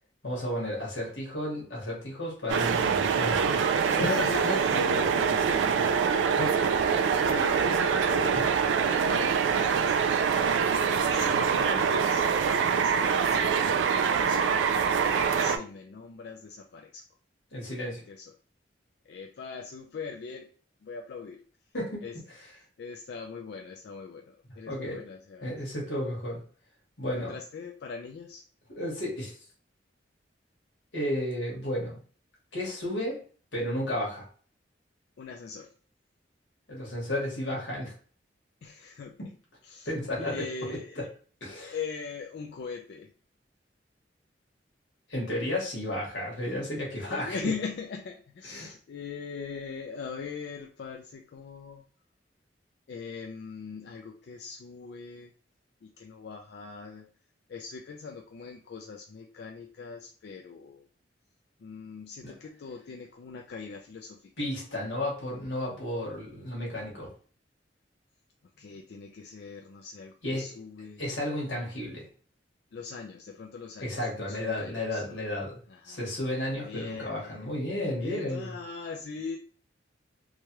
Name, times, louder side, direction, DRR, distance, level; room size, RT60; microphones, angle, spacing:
voice 1, 0.2-4.0 6.4-7.0 8.3-8.5 17.5-18.0 21.7-22.0 24.7-25.0 25.4-26.4 27.0-27.4 28.7-29.3 30.9-32.0 32.5-33.2 33.5-34.3 36.7-37.9 39.2-39.3 39.8-41.0 41.4-41.7 45.1-47.5 48.4-48.7 62.2-62.3 64.4-67.1 70.2-70.4 71.0-72.1 73.8-75.6 75.8-78.5, left 1 dB, 80° left, -4 dB, 1.3 m, -33 dB
sound 1, 2.5-15.6, right 6 dB, 85° right, 0.3 m, -25 dB
voice 2, 3.9-6.2 7.1-8.7 8.9-10.3 11.1-12.3 12.7-13.5 14.2-14.6 15.4-17.1 18.1-18.3 19.0-20.5 20.8-21.4 22.0-22.2 22.8-25.5 27.2-28.4 35.2-35.7 38.6-39.2 39.6-41.1 41.6-43.1 47.0-51.9 52.9-55.3 55.8-57.1 57.5-60.9 61.6-64.5 68.6-71.0 72.7-75.3 75.7-76.1 76.6-77.6 78.0-79.4, left 5 dB, 60° left, 1 dB, 0.3 m, -40 dB
3.1 x 2.2 x 2.9 m, 0.43 s
head